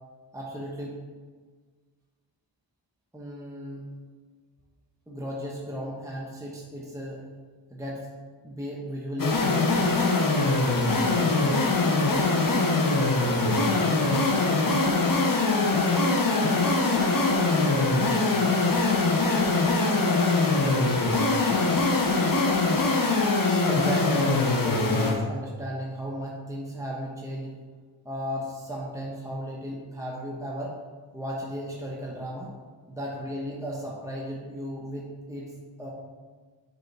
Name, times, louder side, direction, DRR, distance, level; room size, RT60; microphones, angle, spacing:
voice 1, 0.3-1.0 3.1-3.9 5.1-7.2 7.7-8.1 8.4-9.9 23.6-27.6 28.0-30.8 31.1-32.5 32.9-35.5 35.8-35.9, equal, 5° right, -4 dB, 1.1 m, -35 dB
sound 1, 9.2-25.2, left 3 dB, 45° left, 0.9 m, -23 dB
voice 2, 13.2-16.5 17.3-19.3 19.8-22.0, right 1 dB, 40° right, -3 dB, 1.6 m, -40 dB
7.0 x 3.6 x 4.2 m, 1.5 s
wide cardioid pair, 50°, 46 cm